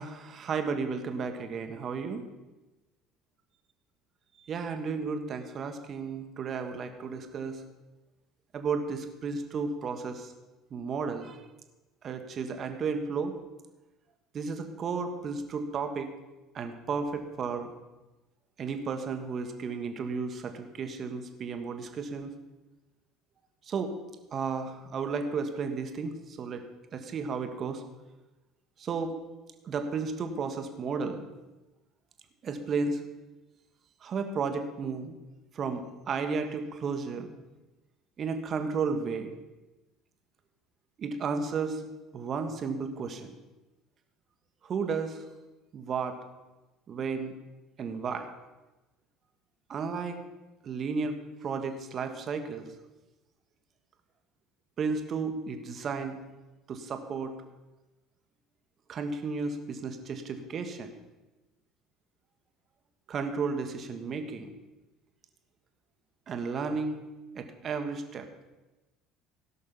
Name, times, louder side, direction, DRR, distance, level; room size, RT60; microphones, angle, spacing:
voice 1, 0.0-2.2 4.4-7.6 8.5-10.3 10.7-11.4 12.0-13.3 14.3-16.1 16.5-17.7 18.6-22.3 23.7-23.9 24.3-26.6 26.9-27.8 28.8-29.2 29.6-31.2 32.4-33.0 34.0-35.1 35.5-37.3 38.2-39.3 41.0-41.8 42.1-43.3 44.6-45.2 45.7-46.2 46.9-47.4 47.8-48.3 49.7-50.2 50.6-52.7 54.8-56.2 56.7-57.3 58.9-60.9 63.1-64.5 66.3-67.1 67.3-68.3, right 5 dB, 40° right, 6 dB, 1.4 m, -33 dB
17.0 x 6.4 x 5.8 m, 1.1 s
figure-of-eight pair, 60°, 0 cm